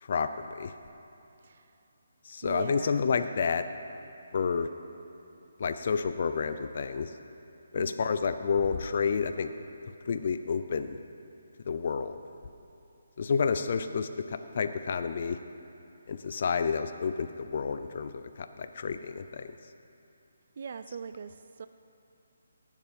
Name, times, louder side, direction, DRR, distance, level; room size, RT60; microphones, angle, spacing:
voice 1, 0.0-0.7 2.2-3.6 4.3-4.7 5.6-7.1 7.7-9.5 10.1-11.0 11.7-12.2 13.2-15.4 16.1-19.5, left 5 dB, 50° left, 9 dB, 0.6 m, -30 dB
voice 2, 2.4-3.3 7.8-8.3 20.6-21.7, right 6 dB, 50° right, 10 dB, 0.4 m, -41 dB
18.5 x 7.4 x 5.3 m, 2.8 s
hypercardioid pair, 160°, 0 cm